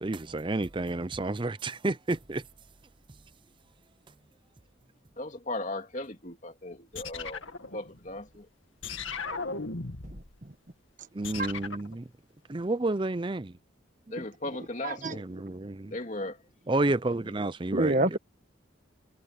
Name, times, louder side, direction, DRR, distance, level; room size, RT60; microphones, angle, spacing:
voice 1, 0.0-2.4 11.1-12.0 12.5-13.5 15.1-15.9 16.7-18.2, right 2 dB, 25° right, 0.5 m, -30 dB
voice 2, 5.2-8.5 14.1-15.3 15.9-16.4 17.2-17.4, left 2 dB, 35° left, 2.7 m, -37 dB
sound 1, 6.9-8.3 8.8-10.4 11.2-11.9, left 4 dB, 75° left, 2.2 m, -37 dB
voice 3, 10.0-10.5 11.3-11.5 14.8-15.2 17.7-18.2, right 2 dB, 40° right, 1.3 m, -28 dB
head